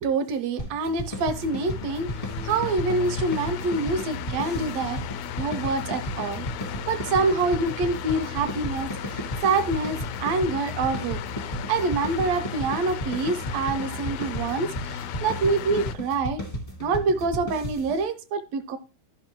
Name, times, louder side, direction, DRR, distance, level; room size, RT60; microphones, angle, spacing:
voice 1, 0.0-5.0 5.4-6.5 6.9-11.2 11.7-16.4 16.8-18.8, right 3 dB, 70° right, 1.8 m, -26 dB
sound 1, 0.6-18.0, equal, 30° left, 0.6 m, -35 dB
sound 2, 1.1-16.0, left 8 dB, 80° left, 1.7 m, -35 dB
13.0 x 5.6 x 3.0 m
omnidirectional pair, 3.4 m